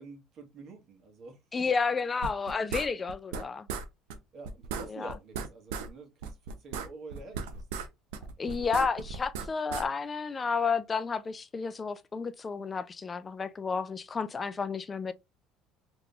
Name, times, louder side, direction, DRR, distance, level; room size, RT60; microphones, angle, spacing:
voice 1, 0.0-1.4 4.3-7.7, right 3 dB, 55° right, 1.3 m, -48 dB
voice 2, 1.5-3.7 4.9-5.1 8.4-15.1, left 5 dB, 30° left, 0.3 m, -31 dB
sound 1, 2.2-3.4 3.7-4.2 4.4-5.9 6.2-7.9 8.1-9.8, right 5 dB, 85° right, 0.5 m, -36 dB
3.6 x 2.9 x 2.3 m
supercardioid pair, 90°, 0 cm